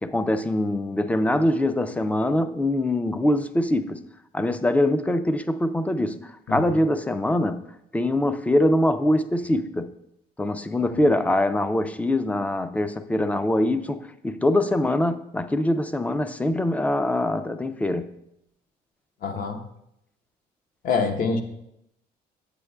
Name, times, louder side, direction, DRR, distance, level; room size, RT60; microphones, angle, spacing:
voice 1, 0.0-4.0 4.3-7.6 7.9-9.9 10.4-18.1, left 1 dB, 10° left, 0.3 m, -23 dB
voice 2, 19.2-19.6 20.8-21.4, left 4 dB, 55° left, 0.9 m, -25 dB
8.2 x 7.9 x 2.2 m
cardioid pair, 110°, 17 cm